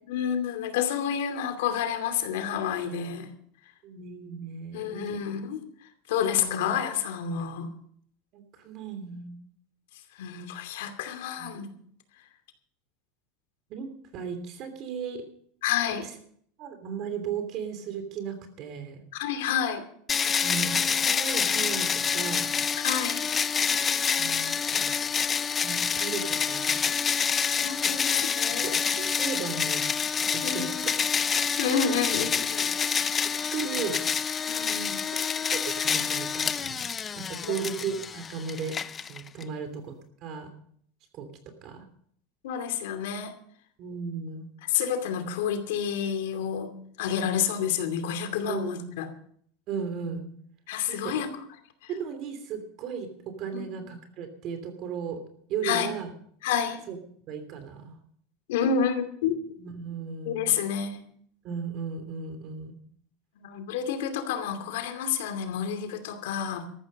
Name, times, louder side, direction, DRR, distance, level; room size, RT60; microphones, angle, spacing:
voice 1, 0.1-3.3 4.7-7.7 10.1-11.7 15.6-16.0 19.1-19.8 22.8-23.3 27.6-28.8 30.4-30.8 31.6-32.7 34.5-35.0 37.4-37.6 42.4-43.3 44.7-46.7 47.0-49.1 50.7-51.3 51.8-51.9 53.5-53.7 55.6-55.9 56.4-56.8 58.5-59.4 60.2-61.0 63.4-66.6, left 8 dB, 85° left, 7 dB, 2.5 m, -29 dB
voice 2, 3.8-5.2 6.2-6.6 8.3-9.4 11.4-11.5 13.7-15.2 16.6-19.0 20.4-22.5 24.2-25.0 25.6-26.8 28.6-29.9 30.3-30.7 33.5-34.0 35.1-38.8 39.1-39.9 40.2-40.5 41.1-41.3 41.6-41.8 43.8-44.5 48.5-48.7 49.7-50.2 50.9-51.1 51.9-55.2 55.5-56.1 56.9-57.0 57.3-57.9 59.6-60.5 61.4-62.8, right 6 dB, 40° right, 8 dB, 3.0 m, -36 dB
sound 1, 20.1-39.4, left 6 dB, 20° left, 0.5 m, -27 dB
14.0 x 12.5 x 5.3 m, 0.62 s
supercardioid pair, 160°, 0 cm